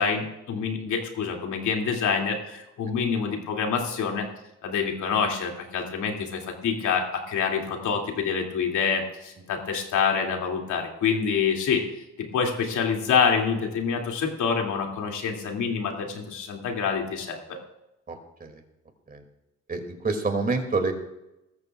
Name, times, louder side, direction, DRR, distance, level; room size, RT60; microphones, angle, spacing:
voice 1, 0.0-4.3 4.6-11.8 12.3-17.6, left 6 dB, 75° left, 1 dB, 2.8 m, -26 dB
voice 2, 18.1-18.6 19.1-19.2 19.7-20.9, right 3 dB, 30° right, 5 dB, 2.7 m, -28 dB
19.5 x 14.0 x 2.5 m, 0.93 s
cardioid pair, 90°, 30 cm